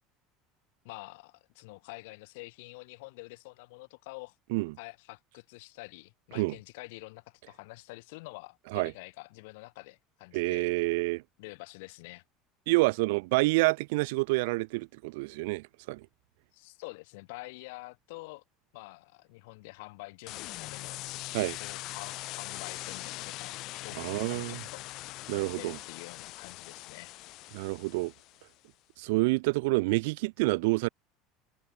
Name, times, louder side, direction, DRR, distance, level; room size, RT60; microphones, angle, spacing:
voice 1, 0.8-4.3 4.8-10.7 11.4-12.2 16.5-18.4 18.7-21.0 21.6-24.9 25.3-27.1, left 25 dB, 80° left, 5.0 m, -47 dB
voice 2, 10.3-11.2 12.7-16.1 21.3-21.6 24.0-24.6 25.3-25.8 27.5-28.1 29.0-30.9, right 25 dB, 80° right, 0.8 m, -28 dB
sound 1, 20.3-28.5, left 19 dB, 55° left, 5.7 m, -41 dB
cardioid pair, 140°, 0 cm